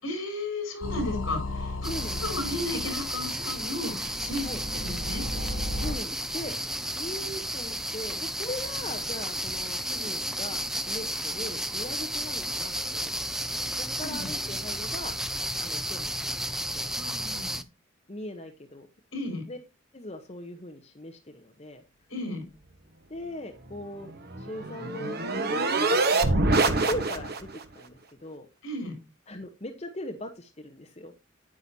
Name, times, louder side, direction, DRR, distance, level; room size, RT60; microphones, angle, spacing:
voice 1, 0.0-1.9 2.2-4.5 4.7-5.2 13.9-14.3 16.9-17.6 19.1-19.4 22.1-22.4 28.6-29.0, left 2 dB, 65° left, 2 dB, 4.9 m, -34 dB
sound 1, 0.8-6.0, left 1 dB, 85° left, 2.9 m, -35 dB
voice 2, 1.8-2.3 4.4-4.6 5.7-6.5 6.9-16.9 18.1-18.9 19.5-19.6 19.9-21.8 23.1-27.5 27.7-28.5 29.3-31.1, left 1 dB, 30° left, 4 dB, 0.9 m, -40 dB
sound 2, 1.8-17.6, right 1 dB, ahead, 0.5 m, -33 dB
sound 3, 24.0-27.6, right 3 dB, 50° right, 1.2 m, -25 dB
9.7 x 9.7 x 2.8 m, 0.27 s
head